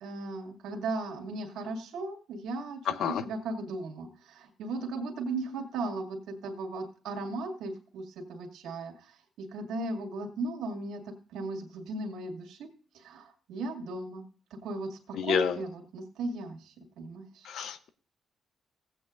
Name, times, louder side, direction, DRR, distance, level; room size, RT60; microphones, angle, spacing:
voice 1, 0.0-2.8 3.1-12.7 12.9-14.2 14.6-17.5, right 2 dB, 80° right, 3 dB, 2.0 m, -37 dB
voice 2, 2.9-3.2 15.2-15.5 17.4-17.9, left 8 dB, 75° left, 13 dB, 0.7 m, -29 dB
16.0 x 8.5 x 2.5 m, 0.38 s
cardioid pair, 90°, 0 cm